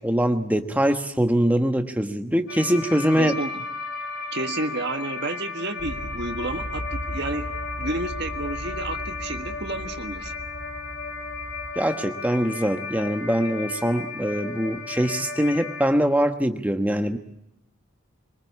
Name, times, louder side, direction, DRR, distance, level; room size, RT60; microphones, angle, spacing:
voice 1, 0.0-3.3 11.7-17.2, equal, 5° right, 7 dB, 1.2 m, -23 dB
sound 1, 2.5-15.9, left 4 dB, 50° left, 3.5 m, -34 dB
voice 2, 3.2-3.5 4.3-10.3, right 2 dB, 50° right, 7 dB, 1.6 m, -31 dB
sound 2, 5.8-11.7, equal, 80° right, 3.2 m, -37 dB
23.5 x 21.5 x 8.3 m, 0.80 s
head